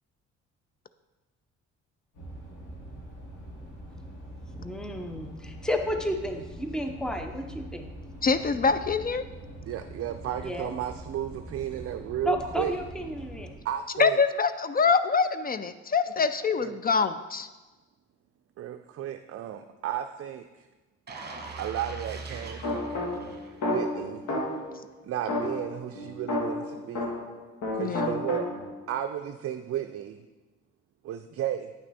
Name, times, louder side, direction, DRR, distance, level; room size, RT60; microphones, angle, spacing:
sound 1, 2.1-13.5, right 1 dB, 85° left, 2.6 m, -43 dB
voice 1, 4.6-7.9 10.3-10.8 12.2-13.5, equal, ahead, 5 dB, 0.7 m, -32 dB
voice 2, 8.2-9.2 14.0-17.5 27.8-28.2, left 5 dB, 30° left, 12 dB, 0.4 m, -25 dB
voice 3, 9.7-12.7 13.6-14.2 16.6-16.7 18.6-20.4 21.6-23.3 23.6-24.2 25.0-27.1 27.7-28.5 28.9-30.2 31.0-31.7, right 11 dB, 50° right, 7 dB, 0.4 m, -33 dB
sound 2, 21.1-24.0 24.4-24.6, right 3 dB, 35° right, 1.2 m, -41 dB
sound 3, 22.6-24.8 25.3-27.4 27.6-28.8, left 2 dB, 70° left, 1.8 m, -31 dB
9.1 x 5.9 x 4.1 m, 1.2 s
cardioid pair, 90°, 30 cm